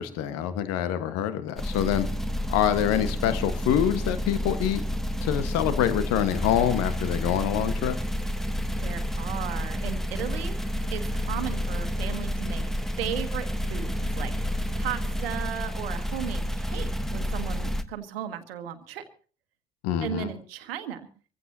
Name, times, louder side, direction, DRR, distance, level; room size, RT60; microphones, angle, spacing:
voice 1, 0.0-2.1 2.5-4.8 5.2-8.0 19.8-20.3, left 10 dB, 55° left, 12 dB, 1.5 m, -26 dB
sound 1, 1.6-17.8, equal, ahead, 1.2 m, -30 dB
voice 2, 8.8-10.6 10.9-12.6 13.0-14.3 14.8-19.0 20.0-21.0, right 10 dB, 75° right, 10 dB, 1.4 m, -35 dB
24.0 x 15.5 x 2.8 m, 0.40 s
figure-of-eight pair, 55°, 30 cm